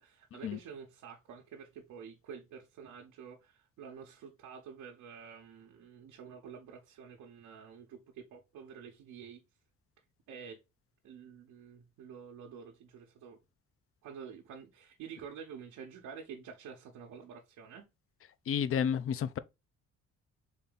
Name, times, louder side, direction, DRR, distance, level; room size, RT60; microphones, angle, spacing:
voice 1, 0.0-9.4 10.3-10.6 11.0-13.4 14.0-17.8, right 7 dB, 85° right, 1.0 m, -49 dB
voice 2, 18.5-19.4, left 8 dB, 50° left, 0.5 m, -31 dB
4.1 x 3.4 x 3.9 m
cardioid pair, 90°, 30 cm